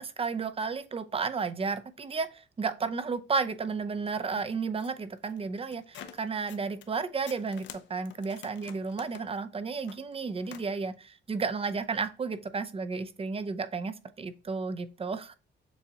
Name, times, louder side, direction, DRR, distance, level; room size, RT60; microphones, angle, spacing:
voice 1, 0.0-15.3, right 4 dB, 30° right, 12 dB, 0.5 m, -33 dB
sound 1, 4.1-7.0 7.3-10.7, left 9 dB, 70° left, 0.6 m, -50 dB
7.0 x 2.5 x 2.8 m, 0.33 s
cardioid pair, 90°, 20 cm